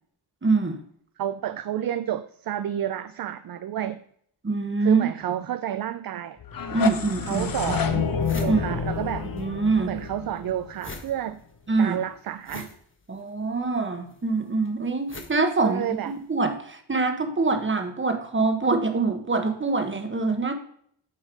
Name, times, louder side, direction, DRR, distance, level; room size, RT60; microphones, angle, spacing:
voice 1, 0.4-0.8 4.4-5.1 6.7-7.8 8.4-8.8 9.3-9.9 11.7-12.0 13.1-20.5, right 3 dB, 25° right, 1.3 m, -25 dB
voice 2, 1.2-4.0 4.8-6.4 7.3-8.1 8.4-9.3 9.8-11.4 11.8-12.8 15.6-16.1, right 10 dB, 50° right, 0.5 m, -30 dB
sound 1, 6.4-11.3, left 6 dB, 45° left, 0.9 m, -29 dB
sound 2, 7.0-7.1 7.6-7.7 7.9-9.5 9.7-16.3, left 3 dB, 25° left, 1.2 m, -43 dB
7.7 x 3.1 x 4.9 m
cardioid pair, 50°, 49 cm